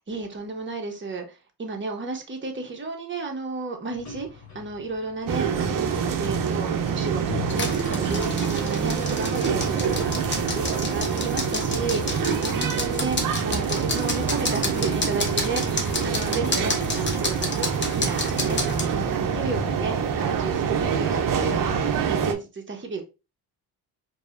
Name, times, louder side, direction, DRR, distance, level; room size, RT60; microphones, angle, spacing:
voice 1, 0.0-10.6 10.9-23.0, right 3 dB, 30° right, 2 dB, 1.1 m, -33 dB
sound 1, 3.9-21.8, left 6 dB, 40° left, 1.3 m, -46 dB
sound 2, 5.3-22.3, right 6 dB, 50° right, 0.7 m, -26 dB
sound 3, 7.5-18.9, left 2 dB, 25° left, 1.0 m, -31 dB
4.6 x 2.8 x 2.6 m, 0.29 s
cardioid pair, 90°, 41 cm